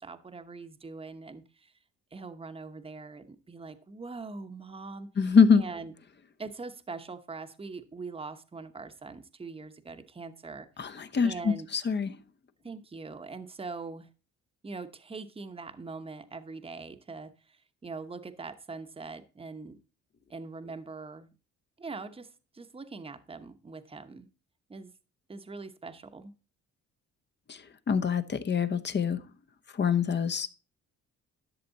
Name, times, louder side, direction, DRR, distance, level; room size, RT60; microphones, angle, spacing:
voice 1, 0.0-1.7 2.1-5.1 5.6-5.9 6.4-11.7 12.6-14.1 14.6-19.8 20.3-21.3 21.8-24.3 24.7-24.9 25.3-26.3, right 4 dB, 20° right, 9 dB, 0.9 m, -42 dB
voice 2, 5.2-5.7 10.8-12.1 27.5-29.2 29.7-30.5, left 6 dB, 35° left, 11 dB, 0.9 m, -25 dB
12.0 x 6.7 x 4.0 m, 0.34 s
cardioid pair, 90°, 30 cm